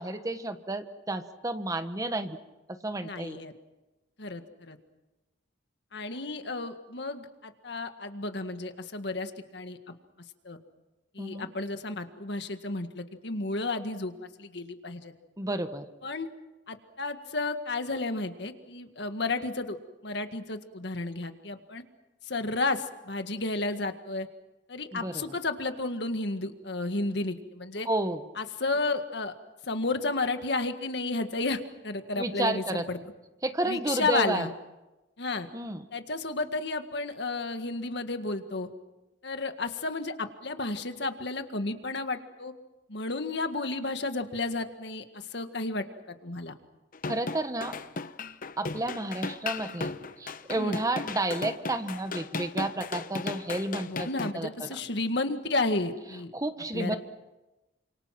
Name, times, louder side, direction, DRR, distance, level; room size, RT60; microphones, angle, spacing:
voice 1, 0.0-2.4 2.7-3.4 11.2-11.5 15.4-15.9 24.9-25.2 27.8-28.2 32.2-32.9 33.4-34.5 35.5-35.8 47.1-47.7 48.6-54.7 56.3-57.0, right 2 dB, 20° right, 9 dB, 1.3 m, -31 dB
voice 2, 3.0-3.5 4.2-4.8 5.9-9.8 10.4-10.6 11.1-14.1 14.4-15.1 16.0-16.3 16.7-19.8 20.0-21.8 22.2-24.3 24.7-27.9 28.4-29.3 29.6-33.0 33.6-34.5 35.2-35.5 35.9-38.7 39.2-42.5 42.9-46.5 50.6-50.8 53.9-56.3 56.7-57.0, left 3 dB, 70° left, 8 dB, 1.9 m, -32 dB
sound 1, 46.9-54.3, left 4 dB, 50° left, 0.9 m, -36 dB
29.0 x 26.5 x 6.0 m, 1.1 s
head